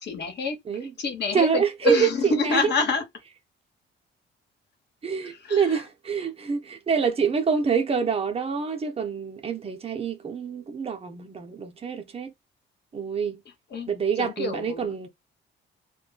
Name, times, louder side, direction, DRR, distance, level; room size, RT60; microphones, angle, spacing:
voice 1, 0.0-0.6 0.8-3.0 5.2-5.8 13.7-13.9 14.2-14.9, left 4 dB, 60° left, 1.1 m, -27 dB
voice 2, 1.3-2.6 5.0-12.3 12.9-13.4 13.9-15.1, right 6 dB, 30° right, 0.7 m, -26 dB
2.2 x 2.1 x 3.8 m
cardioid pair, 90°, 20 cm